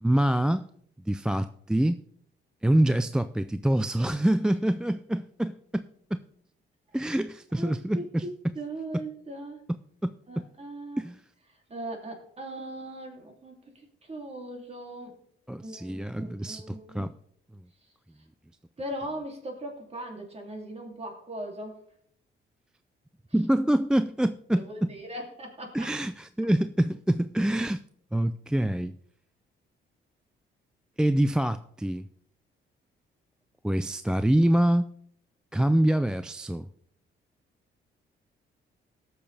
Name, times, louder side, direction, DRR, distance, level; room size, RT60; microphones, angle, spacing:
voice 1, 0.0-0.7 1.1-2.0 2.6-6.2 6.9-8.5 8.9-9.0 9.7-10.5 11.0-11.2 15.5-17.1 23.3-24.9 25.7-27.8 28.1-29.0 31.0-32.1 33.6-34.9 35.5-36.7, right 1 dB, 5° right, 0.3 m, -26 dB
voice 2, 7.6-9.6 10.3-11.0 11.7-15.2 15.6-17.1 18.8-21.8 24.5-25.9, right 1 dB, 30° right, 2.8 m, -39 dB
17.5 x 6.9 x 3.4 m
cardioid pair, 90°, 20 cm